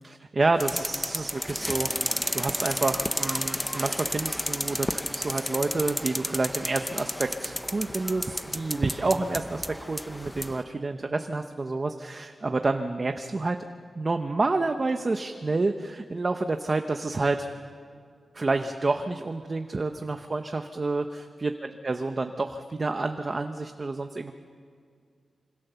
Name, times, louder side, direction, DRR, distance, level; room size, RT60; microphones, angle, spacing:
voice 1, 0.0-9.6 9.9-13.6 14.0-17.5 18.3-24.3, right 3 dB, 30° right, 6 dB, 0.8 m, -29 dB
sound 1, 0.6-10.6, left 1 dB, 5° left, 0.7 m, -32 dB
26.5 x 25.5 x 6.9 m, 2.2 s
wide cardioid pair, 165°, 0 cm